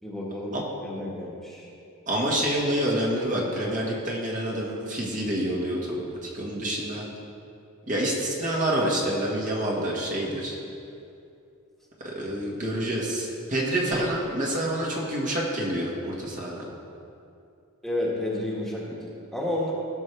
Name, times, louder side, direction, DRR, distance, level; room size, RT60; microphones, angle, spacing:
voice 1, 0.0-1.7 17.8-19.7, left 1 dB, ahead, -5 dB, 1.6 m, -31 dB
voice 2, 2.1-7.0 7.9-10.6 12.0-16.6, right 1 dB, 35° right, -3 dB, 1.6 m, -27 dB
17.0 x 6.5 x 3.4 m, 2.6 s
head